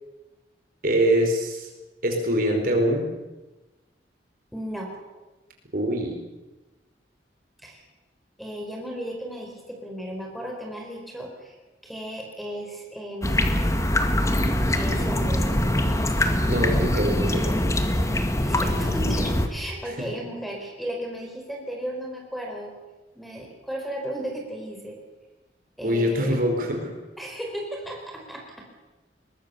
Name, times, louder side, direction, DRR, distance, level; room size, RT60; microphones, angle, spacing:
voice 1, 0.8-1.7 2.0-3.1 5.7-6.2 16.5-17.5 19.9-20.1 25.8-26.9, equal, 55° right, 3 dB, 5.1 m, -24 dB
voice 2, 4.5-4.9 7.6-7.8 8.4-11.5 11.8-13.7 14.7-15.6 18.0-22.7 23.1-25.0 25.8-26.4 27.2-28.6, right 1 dB, ahead, 1 dB, 4.6 m, -35 dB
sound 1, 13.2-19.5, left 1 dB, 20° left, 1.9 m, -23 dB
22.5 x 21.0 x 7.1 m, 1.1 s
head